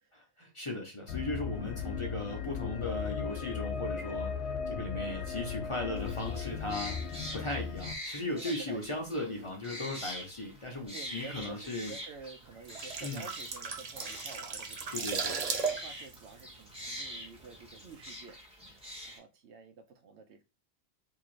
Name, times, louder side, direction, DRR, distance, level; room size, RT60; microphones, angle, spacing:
voice 1, 0.1-11.9 13.0-13.2 14.9-15.4, left 2 dB, 35° left, 0.7 m, -37 dB
sound 1, 1.1-7.9, left 6 dB, 75° left, 0.8 m, -36 dB
sound 2, 6.0-19.2, equal, 5° right, 1.1 m, -45 dB
voice 2, 8.3-9.5 10.9-20.4, right 4 dB, 75° right, 0.9 m, -50 dB
sound 3, 12.5-17.3 17.6-17.9, right 5 dB, 45° right, 0.5 m, -36 dB
4.6 x 2.7 x 2.5 m
omnidirectional pair, 1.2 m